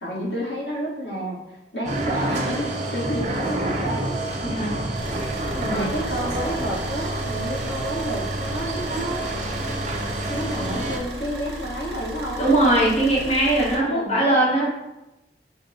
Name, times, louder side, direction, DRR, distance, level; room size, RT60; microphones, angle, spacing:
voice 1, 0.0-4.1 5.7-9.3 10.3-12.5 13.7-14.6, equal, 85° left, -4 dB, 1.3 m, -30 dB
sound 1, 1.8-11.0, right 2 dB, 40° right, 0.6 m, -28 dB
voice 2, 4.4-4.8 5.6-5.9 12.4-14.7, right 1 dB, 35° left, -5 dB, 1.0 m, -20 dB
Car / Idling, 5.0-13.8, right 1 dB, 75° right, 0.9 m, -36 dB
5.3 x 2.3 x 3.9 m, 0.95 s
head